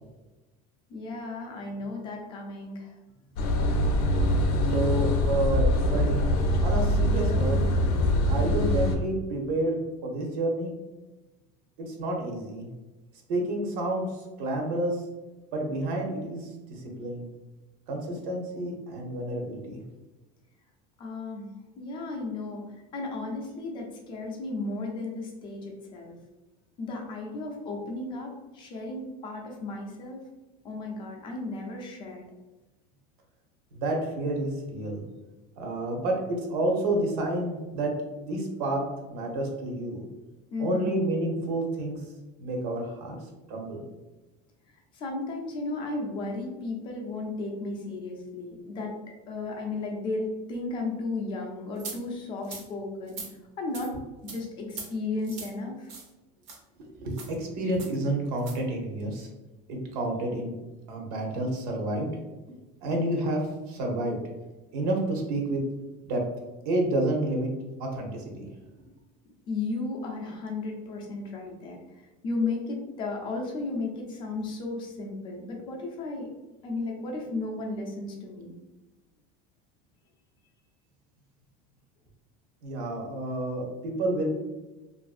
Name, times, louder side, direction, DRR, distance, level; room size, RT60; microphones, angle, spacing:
voice 1, 0.9-2.9 21.0-26.1 26.8-30.2 30.6-32.3 40.5-41.0 44.9-48.9 49.3-53.2 53.6-54.0 54.2-55.9 69.5-76.3 76.6-78.6, left 3 dB, 25° left, 0 dB, 0.4 m, -34 dB
sound 1, 3.4-8.9, left 1 dB, 90° left, 0.5 m, -24 dB
voice 2, 4.7-6.3 6.6-7.6 8.2-10.7 11.8-12.7 13.3-15.0 15.5-17.3 17.9-19.8 33.7-35.0 35.6-37.9 38.2-38.8 39.1-40.0 40.6-42.0 42.4-43.2 43.5-43.8 56.9-59.3 59.7-60.5 60.9-62.2 62.8-64.2 64.7-65.6 66.1-66.2 66.6-67.5 67.8-68.5 82.6-84.3, right 1 dB, 70° right, 1 dB, 0.7 m, -29 dB
sound 2, 51.8-52.0 52.4-52.7 53.1-53.3 53.7-53.9 54.3-54.4 54.7-54.9 55.2-55.5 55.9-56.1 56.4-56.6 57.1-57.3 57.8-57.9 58.4-58.6, right 4 dB, 35° right, 0.5 m, -40 dB
2.7 x 2.5 x 2.4 m, 1.1 s
cardioid pair, 175°, 20 cm